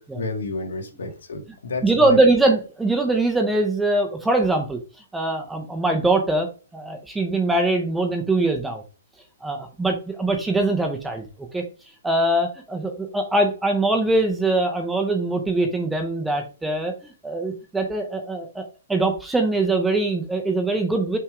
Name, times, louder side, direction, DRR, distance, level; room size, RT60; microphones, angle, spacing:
voice 1, 0.1-2.2, left 3 dB, 70° left, 5 dB, 1.9 m, -30 dB
voice 2, 1.8-4.8 5.1-8.8 9.4-11.3 11.5-11.6 12.0-21.2, right 2 dB, 5° right, 3 dB, 0.6 m, -22 dB
5.8 x 3.5 x 4.8 m, 0.33 s
hypercardioid pair, 175°, 0 cm